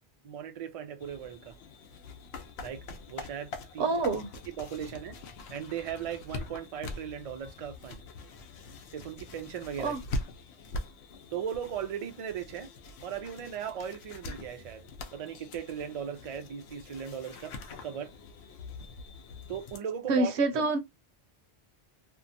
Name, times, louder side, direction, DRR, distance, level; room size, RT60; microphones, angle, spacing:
voice 1, 0.2-1.5 2.6-4.0 4.5-5.2 5.5-8.0 8.9-10.0 11.3-12.7 13.0-14.8 15.1-17.5 17.8-18.1 19.5-20.4, right 8 dB, 65° right, 0.3 m, -38 dB
sound 1, 1.0-19.8, left 2 dB, 75° left, 0.9 m, -43 dB
voice 2, 3.8-4.3 9.8-10.0 20.1-20.8, right 3 dB, 80° right, 0.9 m, -26 dB
2.7 x 2.2 x 2.5 m
omnidirectional pair, 1.1 m